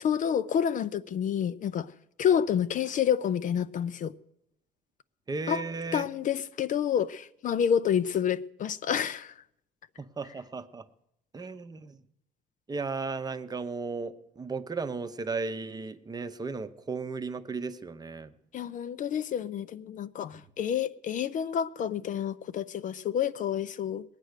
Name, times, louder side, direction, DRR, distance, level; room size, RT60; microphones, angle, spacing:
voice 1, 0.0-1.9 2.2-4.1 5.5-5.6 5.9-9.3 18.5-24.0, left 8 dB, 50° left, 0.5 m, -29 dB
voice 2, 5.3-6.0 10.0-10.9 11.3-12.0 12.7-18.3, right 4 dB, 25° right, 0.8 m, -35 dB
20.0 x 9.1 x 6.6 m
cardioid pair, 110°, 17 cm